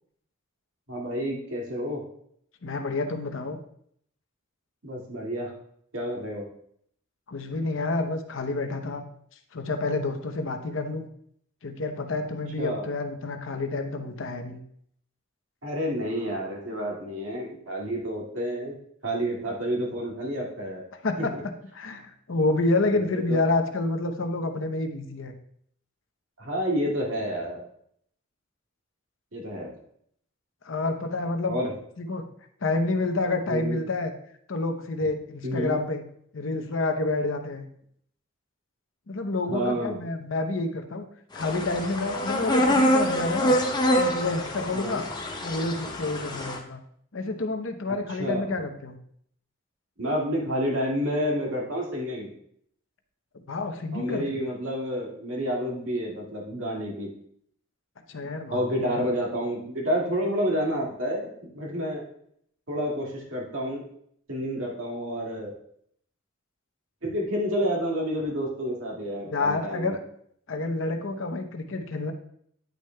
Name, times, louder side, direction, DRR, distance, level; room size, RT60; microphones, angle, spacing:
voice 1, 0.9-2.0 4.8-5.5 5.9-6.4 12.6-12.8 15.6-18.8 19.0-20.8 21.2-21.4 22.9-23.4 26.4-27.7 29.3-29.7 31.5-31.7 33.5-33.8 35.4-35.8 39.5-40.0 44.7-45.0 48.2-48.4 50.0-52.3 53.9-57.1 58.5-62.0 62.7-63.8 64.3-65.5 67.0-69.9, equal, 70° right, -2 dB, 2.1 m, -29 dB
voice 2, 2.6-3.6 7.3-9.0 9.5-11.1 11.6-14.6 21.0-25.3 30.6-31.6 32.0-32.2 32.6-34.1 34.5-36.0 36.3-37.7 39.1-41.0 41.3-43.6 44.0-45.0 45.4-46.8 47.1-49.0 53.3-54.4 58.1-59.0 69.2-70.0 70.5-72.1, left 2 dB, 65° left, 6 dB, 0.8 m, -29 dB
sound 1, 41.4-46.6, equal, 20° left, 0.7 m, -25 dB
10.0 x 6.4 x 2.2 m, 0.67 s
head